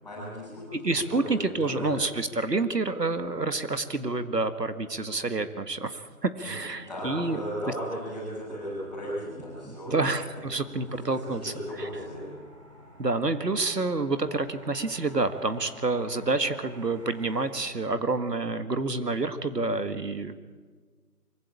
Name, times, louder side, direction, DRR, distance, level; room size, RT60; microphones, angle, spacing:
voice 1, 0.0-0.8 1.1-1.9 6.3-6.6 6.9-9.9 10.7-12.3, equal, ahead, -17 dB, 6.3 m, -36 dB
voice 2, 0.8-7.4 9.9-11.5 11.8-11.9 13.0-20.4, right 3 dB, 90° right, 10 dB, 1.8 m, -28 dB
sound 1, 8.3-17.5, equal, 20° right, 4.5 m, -53 dB
24.0 x 15.5 x 8.7 m, 1.5 s
figure-of-eight pair, 175°, 47 cm